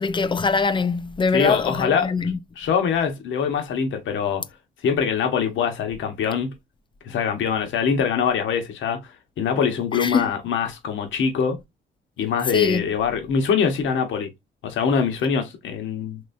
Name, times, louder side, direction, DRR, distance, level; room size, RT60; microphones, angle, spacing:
voice 1, 0.0-2.4 9.9-10.3 12.5-12.9, left 4 dB, 25° left, 0.4 m, -23 dB
voice 2, 1.3-2.1 2.6-4.4 4.8-6.5 7.1-11.6 12.2-14.3 14.6-16.2, left 6 dB, 75° left, 1.1 m, -23 dB
4.1 x 3.1 x 2.6 m
cardioid pair, 90°, 20 cm